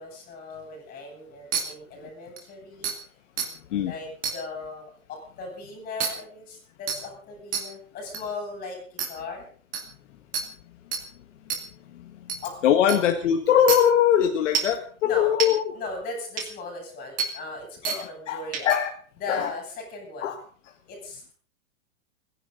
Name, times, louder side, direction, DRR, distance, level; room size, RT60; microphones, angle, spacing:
voice 1, 0.0-2.9 3.7-9.5 12.4-12.5 12.9-13.0 15.0-15.4 15.7-18.7 19.2-20.3 20.9-21.3, left 3 dB, 20° left, 2 dB, 7.8 m, -37 dB
sound 1, 1.5-1.6 2.4-2.5 2.8-2.9 3.4-3.5 4.2-4.4 6.0-6.1 6.9-7.0 7.5-7.6 8.1-8.2 9.0-9.1 9.7-9.8 10.3-10.4 10.9-11.0 11.5-11.6 12.3-12.4 12.9-13.0 13.7-13.8 14.5-14.8 15.4-15.5 16.4-16.5 17.2-17.3 17.8-18.0 18.5-18.8, right 6 dB, 20° right, 2.4 m, -27 dB
voice 2, 12.6-15.8 17.8-18.9 19.3-19.5 20.2-20.4, left 9 dB, 60° left, 5 dB, 1.8 m, -22 dB
29.5 x 11.0 x 4.0 m, 0.43 s
supercardioid pair, 160°, 41 cm